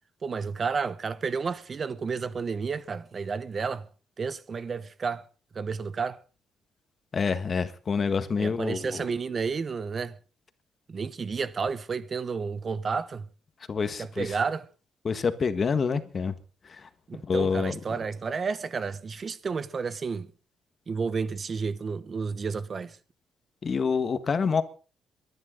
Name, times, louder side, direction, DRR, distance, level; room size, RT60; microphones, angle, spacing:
voice 1, 0.2-3.9 4.2-5.3 5.5-6.2 8.4-10.2 10.9-13.3 14.0-14.7 17.1-20.3 20.9-23.0, right 5 dB, 40° right, 1.0 m, -31 dB
voice 2, 7.1-9.0 13.7-14.3 15.0-16.3 16.6-16.9 17.3-18.0 23.6-24.6, left 5 dB, 40° left, 1.5 m, -27 dB
22.5 x 11.0 x 3.9 m
cardioid pair, 90°, 0 cm